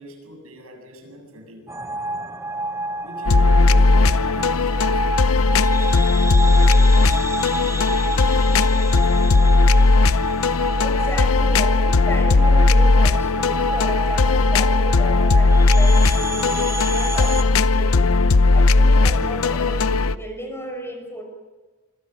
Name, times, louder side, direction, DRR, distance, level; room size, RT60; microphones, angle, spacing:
voice 1, 0.0-1.8 3.0-5.0 5.6-9.7, equal, 80° right, 3 dB, 7.6 m, -40 dB
sound 1, 1.7-17.4, right 1 dB, 15° right, 0.9 m, -28 dB
sound 2, 3.3-20.2, left 3 dB, 75° left, 0.7 m, -17 dB
voice 2, 10.8-18.0 18.5-21.2, equal, 10° left, 3 dB, 5.8 m, -34 dB
26.0 x 25.0 x 6.1 m, 1.3 s
head